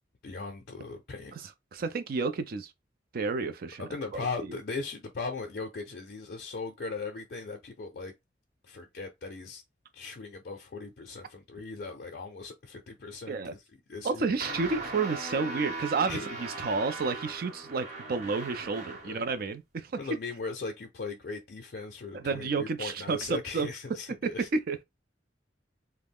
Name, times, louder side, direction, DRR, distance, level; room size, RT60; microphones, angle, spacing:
voice 1, 0.2-1.3 3.8-8.1 8.6-9.6 9.9-13.4 13.9-14.3 16.1-16.6 19.0-19.2 20.0-24.5, left 4 dB, 55° left, 0.5 m, -38 dB
voice 2, 1.3-2.7 3.1-4.3 13.3-13.5 14.0-19.9 22.1-23.7 24.2-24.8, right 4 dB, 55° right, 0.4 m, -31 dB
sound 1, 14.4-19.2, right 2 dB, 40° right, 0.9 m, -39 dB
2.3 x 2.0 x 3.4 m
head